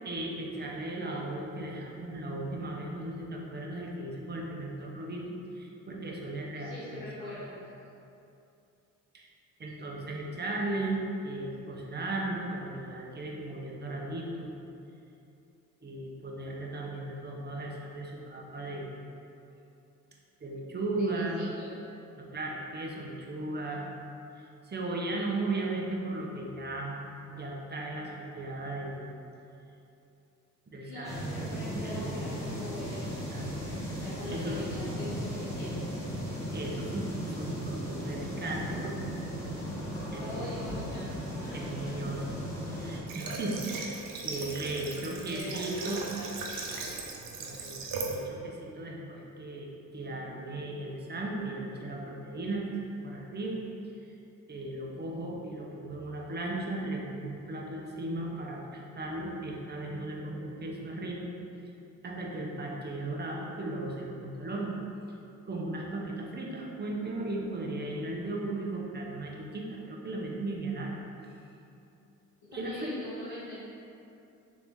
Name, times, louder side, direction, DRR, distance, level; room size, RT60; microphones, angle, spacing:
voice 1, 0.0-7.4 9.1-9.3 9.6-14.5 15.8-18.9 20.4-21.4 22.2-23.9 24.4-27.0 27.3-29.0 30.7-31.3 31.7-32.1 33.1-33.5 33.9-34.0 34.3-34.6 36.5-38.9 40.1-40.5 41.5-42.4 42.7-46.0 47.4-53.6 54.5-61.3 62.0-64.8 65.5-71.0 72.5-73.0, right 2 dB, 30° right, -2 dB, 0.8 m, -36 dB
voice 2, 6.5-7.6 20.9-21.7 30.7-33.2 34.0-35.9 40.2-42.0 44.2-44.6 44.8-46.9 72.4-73.6, left 1 dB, 75° left, -10 dB, 1.0 m, -43 dB
sound 1, 31.0-43.0, equal, 10° left, 1.4 m, -36 dB
Water / Water tap faucet, 43.1-48.2, right 3 dB, 70° right, 0.7 m, -38 dB
4.0 x 2.9 x 3.6 m, 2.7 s
supercardioid pair, 60°, 35 cm